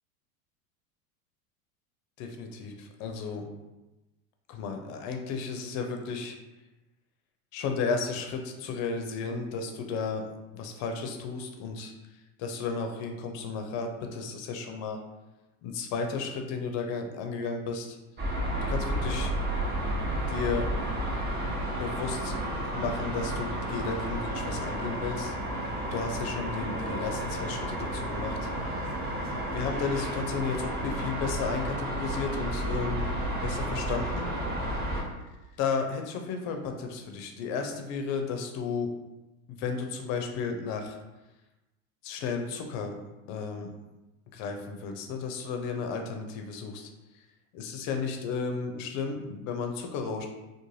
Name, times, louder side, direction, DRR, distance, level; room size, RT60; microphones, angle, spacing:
voice 1, 2.2-3.4 4.5-6.4 7.5-10.2 10.5-11.9 12.4-15.0 15.6-18.0 18.7-19.3 20.1-20.7 21.8-22.3 22.6-25.3 25.9-28.8 29.5-33.1 33.3-34.3 34.9-35.0 35.6-38.9 39.5-41.0 42.0-42.9 43.3-43.7 44.3-46.9 47.5-50.3, left 5 dB, 40° left, 4 dB, 0.5 m, -33 dB
sound 1, 18.2-35.0, right 1 dB, 25° right, 0.6 m, -32 dB
2.5 x 2.2 x 3.1 m, 1.0 s
hypercardioid pair, 105°, 44 cm